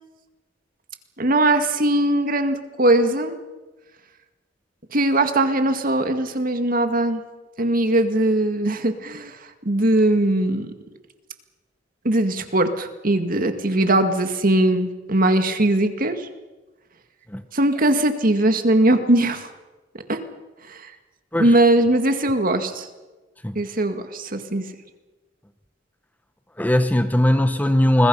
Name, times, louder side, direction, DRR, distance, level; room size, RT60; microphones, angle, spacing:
voice 1, 1.2-3.3 4.9-7.2 7.6-9.3 9.7-10.7 12.0-16.3 17.5-19.5 20.1-20.2 20.7-20.9 21.4-22.9 23.6-24.7, right 1 dB, 50° right, 7 dB, 2.0 m, -20 dB
voice 2, 26.6-28.1, left 1 dB, 10° left, 9 dB, 1.0 m, -19 dB
28.5 x 21.5 x 5.5 m, 1.2 s
head